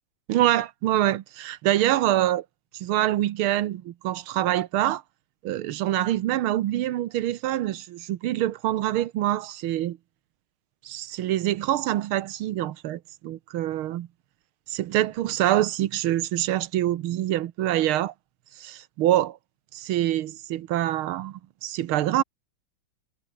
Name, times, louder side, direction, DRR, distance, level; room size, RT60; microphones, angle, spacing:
voice 1, 0.3-2.5 2.7-5.0 5.4-10.0 10.9-14.1 14.7-18.1 18.6-19.4 19.7-22.2, right 13 dB, 90° right, 1.7 m, -25 dB
omnidirectional pair, 2.3 m